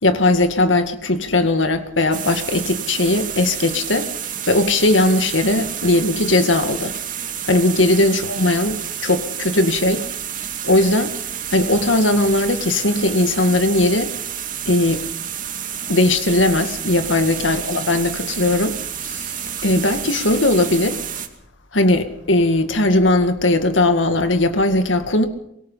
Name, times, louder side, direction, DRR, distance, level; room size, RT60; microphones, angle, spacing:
voice 1, 0.0-4.1 4.5-7.0 7.4-10.1 10.6-11.1 11.5-14.1 14.7-15.0 15.9-19.3 19.6-21.0 21.7-25.3, left 2 dB, 90° left, 2.1 m, -18 dB
sound 1, 2.1-21.3, right 9 dB, 45° right, 2.4 m, -30 dB
23.5 x 22.0 x 5.6 m
head